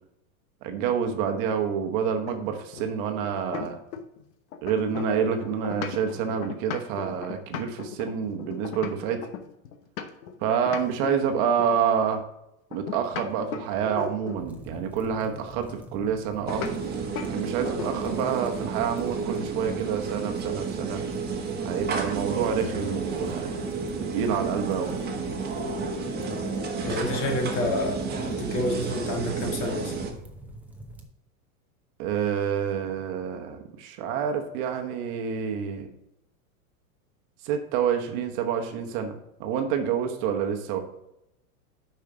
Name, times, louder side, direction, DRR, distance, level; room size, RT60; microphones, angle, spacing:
voice 1, 0.6-3.8 4.6-9.2 10.4-12.2 12.7-16.6 17.3-21.0 21.6-23.5 24.1-24.9 32.0-35.9 37.4-40.8, right 7 dB, 45° right, 6 dB, 1.1 m, -28 dB
sound 1, 2.3-4.2 4.5-10.3 10.7-11.8 12.7-14.5 16.5-16.7 17.2-17.3 17.6-18.3, left 7 dB, 70° left, 1.1 m, -37 dB
sound 2, 14.4-31.1, right 1 dB, 5° right, 0.8 m, -45 dB
sound 3, 16.5-30.1, right 4 dB, 20° right, 1.4 m, -31 dB
voice 2, 26.9-29.9, left 1 dB, 45° left, 2 dB, 2.0 m, -29 dB
7.1 x 5.7 x 3.9 m, 0.84 s
hypercardioid pair, 120°, 43 cm